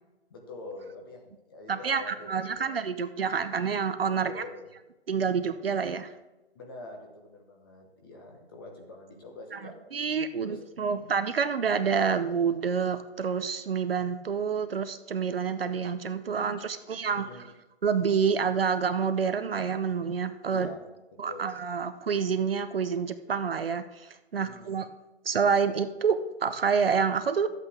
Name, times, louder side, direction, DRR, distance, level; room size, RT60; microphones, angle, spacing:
voice 1, 0.3-2.8 4.2-4.6 6.5-9.8 10.4-11.1 17.1-17.4 20.5-20.8 21.3-21.5 24.3-24.7, left 2 dB, 20° left, 1 dB, 1.1 m, -45 dB
voice 2, 1.7-4.4 5.1-6.1 9.9-17.3 17.8-20.7 21.2-24.9 25.2-27.5, right 6 dB, 55° right, 10 dB, 0.7 m, -28 dB
12.5 x 8.2 x 3.5 m, 1.0 s
hypercardioid pair, 165°, 34 cm